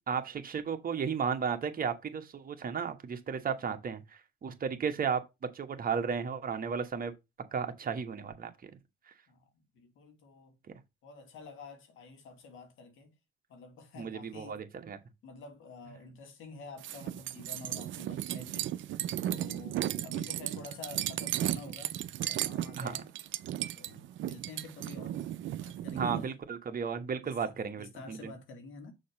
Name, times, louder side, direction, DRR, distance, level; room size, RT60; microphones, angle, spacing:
voice 1, 0.1-5.2 5.5-7.1 7.5-8.7 14.0-15.0 22.8-22.9 26.0-28.3, right 6 dB, 45° right, 1.3 m, -34 dB
voice 2, 9.3-10.6 11.0-13.1 13.5-14.6 15.2-18.8 19.3-21.9 22.2-23.1 23.7-25.2 25.6-26.3 27.2-28.9, left 3 dB, 85° left, 1.8 m, -49 dB
sound 1, 16.8-26.3, right 12 dB, 75° right, 0.6 m, -35 dB
6.4 x 2.9 x 5.7 m
cardioid pair, 90°, 20 cm